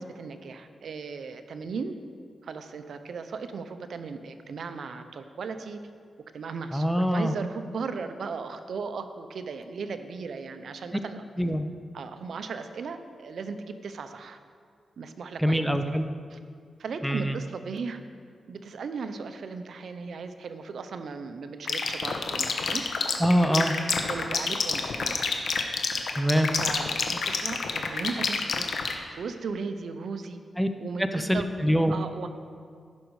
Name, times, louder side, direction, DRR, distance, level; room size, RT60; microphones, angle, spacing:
voice 1, 0.0-1.9 2.4-5.8 6.3-11.2 11.9-14.4 15.0-16.0 16.3-16.4 16.8-18.0 18.5-22.8 23.4-23.6 24.1-25.2 26.6-28.7 29.1-30.4 30.8-31.5 31.9-32.3, right 5 dB, 70° right, 9 dB, 0.6 m, -37 dB
voice 2, 6.7-7.3 11.4-11.7 15.4-16.1 17.0-17.4 23.2-23.7 26.2-26.5 30.6-30.7 31.1-31.9, equal, ahead, 8 dB, 0.6 m, -24 dB
sound 1, 21.7-28.9, left 5 dB, 75° left, 1.0 m, -27 dB
15.0 x 6.3 x 4.8 m, 2.2 s
cardioid pair, 85°, 0 cm